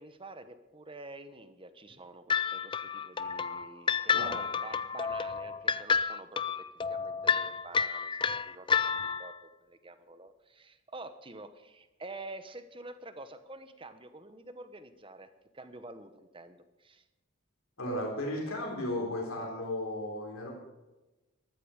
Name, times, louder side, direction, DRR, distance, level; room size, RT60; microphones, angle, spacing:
voice 1, 0.0-9.3 9.6-15.3 15.5-17.0, right 2 dB, 25° right, 10 dB, 1.0 m, -48 dB
sound 1, 2.3-9.4, left 6 dB, 25° left, 0.4 m, -30 dB
voice 2, 17.8-20.5, left 1 dB, 75° left, -1 dB, 4.0 m, -35 dB
14.0 x 13.5 x 5.1 m, 1.1 s
head